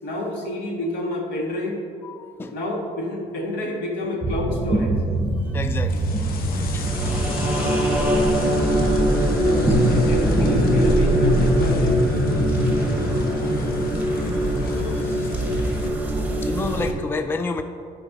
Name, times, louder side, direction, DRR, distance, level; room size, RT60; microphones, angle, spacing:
voice 1, 0.0-1.8 2.5-5.0 9.3-12.1, left 1 dB, 80° left, 0 dB, 1.6 m, -28 dB
voice 2, 2.0-2.6 5.5-6.0 6.7-6.9 9.1-9.3 12.5-12.6 13.1-13.2 14.9-15.3 16.1-17.6, left 3 dB, 15° left, 8 dB, 0.4 m, -30 dB
sound 1, 4.2-16.9, right 1 dB, 10° right, 1.0 m, -21 dB
sound 2, 5.9-15.9, left 3 dB, 60° left, 0.8 m, -31 dB
11.0 x 4.5 x 4.1 m, 2.4 s
cardioid pair, 110°, 17 cm